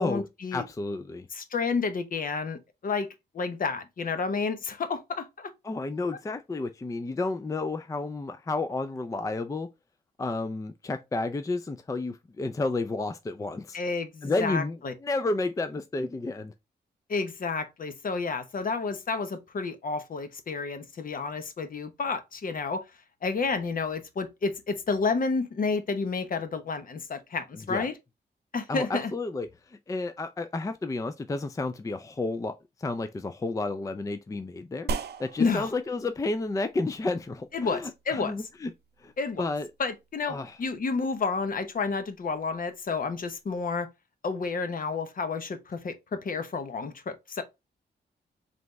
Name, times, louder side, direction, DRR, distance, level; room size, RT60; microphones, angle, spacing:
voice 1, 0.0-0.6 1.3-3.1 3.3-5.5 13.7-14.9 17.1-22.8 23.2-28.0 28.5-29.1 35.4-35.7 37.5-38.4 39.2-39.4 39.8-43.9 44.2-47.4, left 4 dB, 50° left, 0.9 m, -30 dB
voice 2, 0.5-1.3 5.6-9.7 10.2-13.8 14.2-16.5 27.7-27.9 28.7-34.9 35.2-38.7 39.0-39.1 39.4-39.7 40.3-40.6, left 3 dB, 20° left, 0.4 m, -31 dB
sound 1, 34.9-43.6, right 4 dB, 65° right, 0.5 m, -42 dB
4.0 x 3.3 x 3.1 m
cardioid pair, 85°, 18 cm